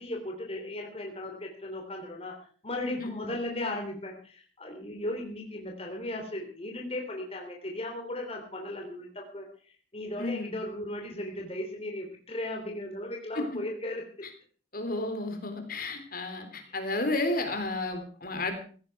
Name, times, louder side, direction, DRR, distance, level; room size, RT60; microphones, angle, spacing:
voice 1, 0.0-2.3 2.6-9.5 9.9-14.0 16.7-16.8, left 1 dB, 30° left, 1 dB, 3.4 m, -36 dB
voice 2, 10.2-10.5 13.4-13.5 14.7-18.5, left 2 dB, 50° left, 6 dB, 3.7 m, -32 dB
16.5 x 16.0 x 4.7 m, 0.42 s
head